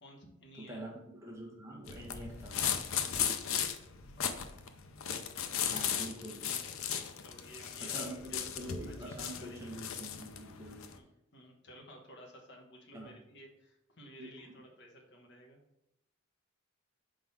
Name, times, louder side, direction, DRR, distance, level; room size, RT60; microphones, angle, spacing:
voice 1, 0.0-0.8 4.2-4.3 7.2-8.5 8.8-9.8 10.9-15.6, equal, 60° left, 0 dB, 1.2 m, -55 dB
voice 2, 0.6-2.6 5.7-6.5 7.8-10.9 12.9-13.1 14.2-14.6, right 1 dB, 15° right, -2 dB, 1.1 m, -45 dB
sound 1, 1.9-10.9, left 8 dB, 85° left, 0.6 m, -36 dB
4.7 x 3.8 x 5.7 m, 0.84 s
head